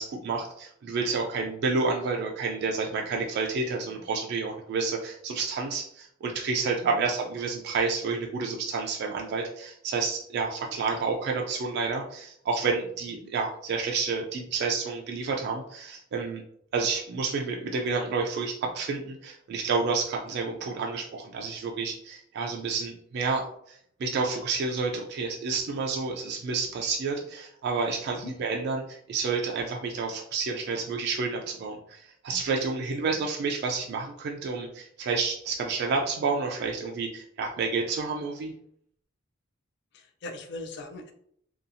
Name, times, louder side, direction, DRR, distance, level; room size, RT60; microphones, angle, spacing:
voice 1, 0.0-16.4 16.7-38.5, right 4 dB, 55° right, 1 dB, 0.3 m, -30 dB
voice 2, 39.9-41.1, left 2 dB, 60° left, 5 dB, 0.4 m, -41 dB
2.7 x 2.3 x 2.5 m, 0.67 s
head